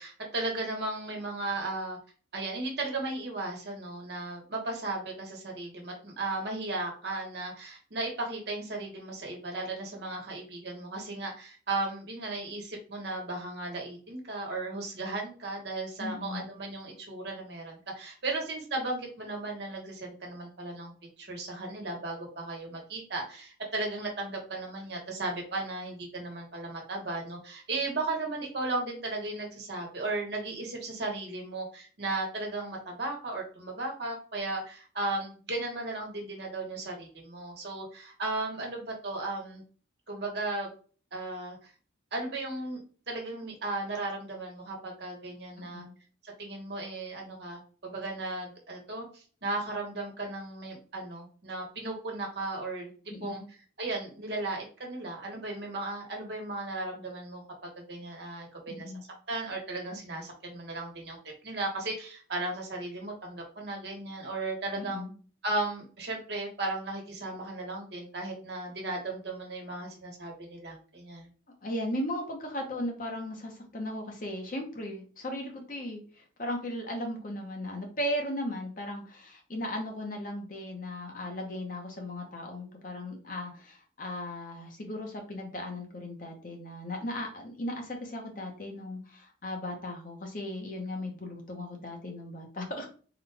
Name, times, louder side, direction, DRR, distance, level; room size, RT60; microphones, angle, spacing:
voice 1, 0.0-2.0 2.3-20.9 21.2-39.6 40.1-40.7 41.1-41.7 42.1-42.8 43.1-45.9 46.2-53.4 53.8-58.9 59.3-61.2 61.4-65.0 65.4-71.3, right 2 dB, 55° right, 0 dB, 1.2 m, -36 dB
voice 2, 16.0-16.4 45.6-45.9 53.1-53.4 58.7-59.0 64.8-65.1 71.6-92.8, left 1 dB, 45° left, 2 dB, 0.8 m, -37 dB
3.8 x 2.3 x 3.3 m, 0.40 s
head